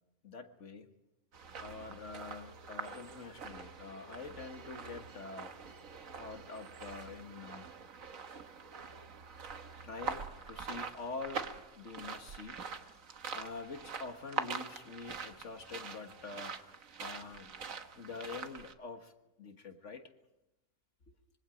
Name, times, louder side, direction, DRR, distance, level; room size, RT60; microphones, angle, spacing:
voice 1, 0.2-0.9 1.6-5.6 6.1-7.7 9.8-13.0 13.3-16.5 17.0-17.5 18.0-19.1 19.4-20.0, left 4 dB, 60° left, 6 dB, 1.9 m, -46 dB
sound 1, 1.3-18.7, right 5 dB, 75° right, 1.7 m, -44 dB
25.5 x 23.5 x 5.1 m, 0.93 s
omnidirectional pair, 1.4 m